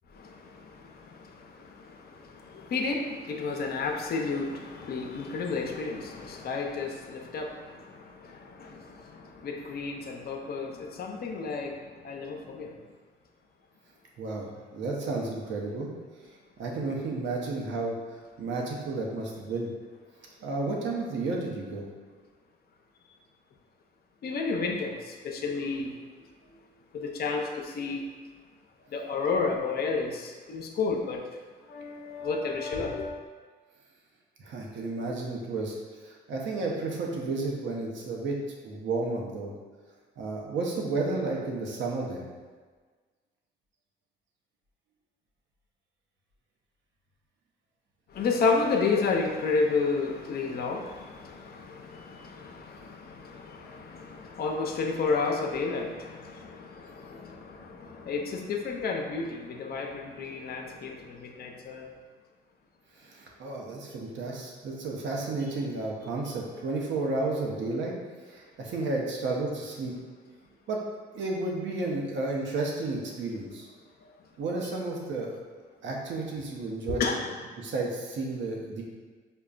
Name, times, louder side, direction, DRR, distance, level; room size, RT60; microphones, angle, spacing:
voice 1, 0.1-12.8 24.2-25.9 26.5-26.6 26.9-28.0 28.9-31.4 31.7-33.2 48.1-61.9 74.0-74.1 76.9-77.2, left 4 dB, 50° left, 1 dB, 0.5 m, -31 dB
voice 2, 14.2-15.9 16.6-18.0 18.4-19.7 20.4-21.9 34.4-35.8 36.0-38.4 38.6-39.5 40.2-42.3 63.0-67.9 68.3-69.9 70.7-70.8 71.1-73.7 74.4-75.4 75.8-77.0 77.6-78.8, right 3 dB, 70° right, -1 dB, 0.7 m, -32 dB
5.2 x 2.2 x 2.4 m, 1.4 s
cardioid pair, 90°, 20 cm